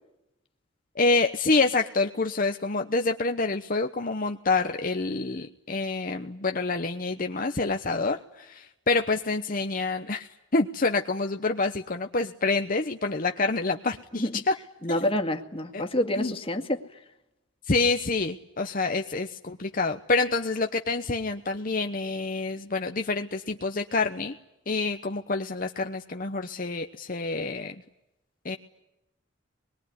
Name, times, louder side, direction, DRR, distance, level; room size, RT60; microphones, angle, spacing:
voice 1, 0.9-14.6 14.9-15.1 15.7-15.8 16.2-16.3 17.6-24.4 24.7-27.8 28.4-28.6, left 3 dB, 45° left, 5 dB, 1.0 m, -27 dB
voice 2, 14.8-17.0, left 1 dB, 30° left, 4 dB, 2.1 m, -28 dB
25.0 x 22.0 x 9.7 m, 0.90 s
head